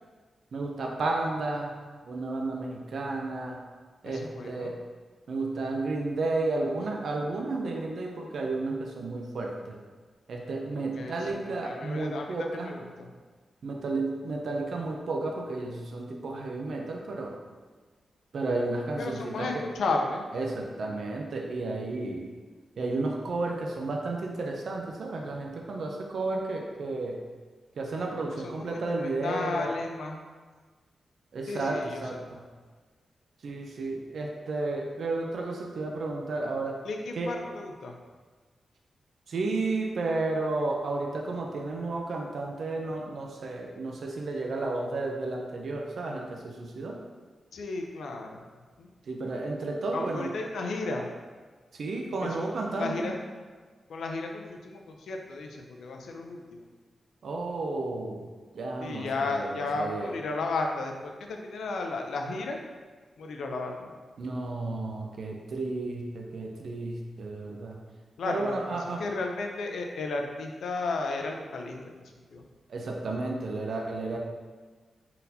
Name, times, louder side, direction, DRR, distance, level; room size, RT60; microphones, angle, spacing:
voice 1, 0.5-1.7 2.1-3.6 4.0-4.8 5.3-9.8 10.3-12.7 13.6-17.3 18.3-19.6 20.3-22.3 22.8-27.2 27.8-29.7 31.3-32.4 33.4-36.8 37.2-37.3 39.3-47.0 49.1-50.3 51.7-53.1 57.2-58.3 58.5-60.1 64.2-67.8 68.3-69.0 72.7-74.2, right 2 dB, 65° right, 0 dB, 0.5 m, -32 dB
voice 2, 4.0-4.7 11.0-13.1 19.0-20.2 28.4-30.2 31.5-32.0 36.8-37.9 47.5-48.4 48.8-48.9 49.9-51.1 52.2-53.2 53.9-56.6 58.8-62.6 63.2-63.9 68.2-68.6 69.0-71.9 72.3-72.4, left 3 dB, 90° left, 2 dB, 0.5 m, -34 dB
4.1 x 4.0 x 2.7 m, 1.5 s
wide cardioid pair, 140°, 0 cm